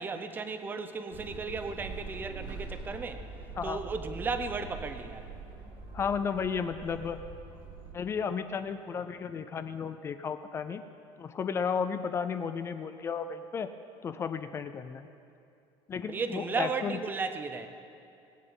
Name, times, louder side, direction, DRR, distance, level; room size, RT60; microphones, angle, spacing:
voice 1, 0.0-3.3 3.6-5.2 16.1-17.7, right 4 dB, 15° right, 9 dB, 0.6 m, -35 dB
sound 1, 1.1-7.9, right 3 dB, 45° right, 1.8 m, -43 dB
voice 2, 5.9-7.2 7.9-10.8 11.2-13.7 14.0-15.1 15.9-16.9, left 6 dB, 20° left, 10 dB, 0.4 m, -33 dB
20.5 x 8.1 x 5.4 m, 2.5 s
cardioid pair, 175°, 12 cm